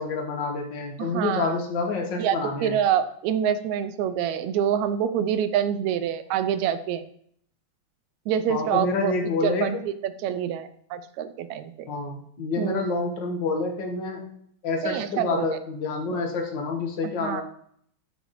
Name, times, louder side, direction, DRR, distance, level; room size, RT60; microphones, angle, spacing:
voice 1, 0.0-2.8 8.5-9.8 11.9-14.3 14.6-17.4, left 3 dB, 45° left, 2 dB, 1.6 m, -28 dB
voice 2, 1.0-1.6 2.2-7.1 8.3-9.1 9.4-9.8 10.0-11.9 12.6-12.9 14.8-15.5 16.1-16.2 17.0-17.4, right 9 dB, 80° right, 11 dB, 1.9 m, -26 dB
13.0 x 6.3 x 3.1 m, 0.65 s
omnidirectional pair, 3.4 m